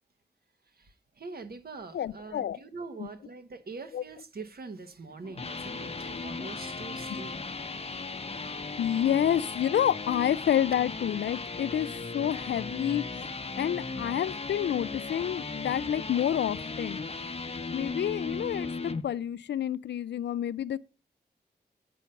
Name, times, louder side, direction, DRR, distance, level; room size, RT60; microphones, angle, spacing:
voice 1, 0.8-7.4, right 4 dB, 65° right, 1.3 m, -43 dB
voice 2, 1.9-2.6 3.0-3.1 3.9-4.0 8.8-13.3 13.6-17.0 17.7-20.8, left 10 dB, 90° left, 0.4 m, -29 dB
sound 1, 5.1-19.0, left 3 dB, 35° left, 0.7 m, -37 dB
8.4 x 5.3 x 5.7 m
cardioid pair, 55°, 17 cm